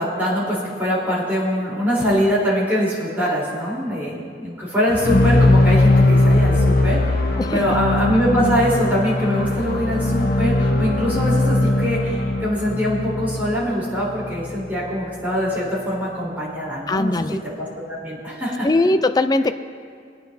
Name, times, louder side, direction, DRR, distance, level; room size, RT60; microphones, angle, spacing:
voice 1, 0.0-7.2 7.5-18.7, equal, 10° right, -7 dB, 3.5 m, -23 dB
sound 1, 4.9-14.9, left 2 dB, 55° left, 0.8 m, -19 dB
voice 2, 16.9-17.4 18.6-19.5, left 2 dB, 20° left, 10 dB, 0.4 m, -19 dB
22.5 x 9.2 x 2.7 m, 2.2 s
head